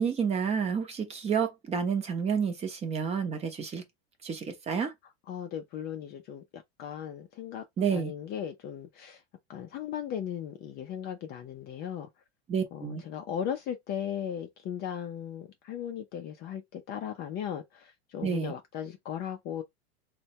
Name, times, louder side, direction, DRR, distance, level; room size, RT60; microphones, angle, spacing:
voice 1, 0.0-3.8 4.2-4.9 7.8-8.1 12.5-13.0 18.2-18.5, right 6 dB, 20° right, 0.6 m, -29 dB
voice 2, 5.3-7.6 7.9-9.2 9.5-12.1 12.7-19.6, left 9 dB, 30° left, 0.4 m, -37 dB
3.2 x 2.2 x 2.7 m
supercardioid pair, 135°, 32 cm